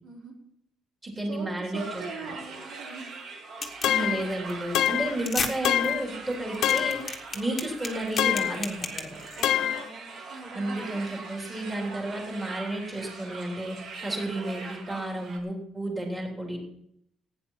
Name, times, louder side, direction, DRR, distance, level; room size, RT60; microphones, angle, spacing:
voice 1, 0.0-0.3 1.3-3.1 3.7-3.9 7.3-7.5 9.1-11.0, right 4 dB, 75° right, -4 dB, 4.6 m, -42 dB
voice 2, 1.0-1.8 3.8-7.0 7.3-9.2 10.5-13.8 14.0-16.6, right 1 dB, 10° right, 0 dB, 3.4 m, -32 dB
sound 1, 1.7-15.4, right 4 dB, 50° right, 2.6 m, -42 dB
sound 2, 3.6-4.0 4.3-4.5 4.8-4.9 5.2-5.5 5.8-5.9 6.3-9.4, left 4 dB, 25° left, 1.5 m, -33 dB
sound 3, 3.8-4.3 4.7-5.2 5.6-6.1 6.6-7.1 8.2-8.6 9.4-9.9, left 11 dB, 65° left, 0.5 m, -25 dB
16.0 x 9.6 x 5.7 m, 0.74 s
cardioid pair, 170°, 0 cm